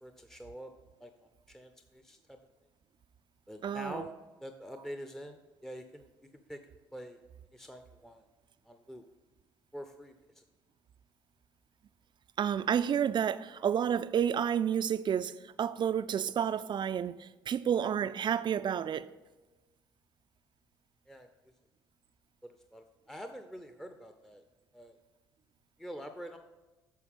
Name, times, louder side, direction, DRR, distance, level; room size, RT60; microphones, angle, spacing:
voice 1, 0.0-0.7 1.0-1.1 1.5-2.4 3.5-4.1 4.4-6.6 6.9-7.2 7.5-8.2 8.7-9.0 9.7-10.4 21.1-21.3 22.7-24.4 24.7-25.0 25.8-26.4, equal, 5° left, 0.7 m, -46 dB
voice 2, 3.6-4.1 12.4-19.1, right 8 dB, 40° right, 0.4 m, -30 dB
10.0 x 6.5 x 3.6 m
hypercardioid pair, 55°, 12 cm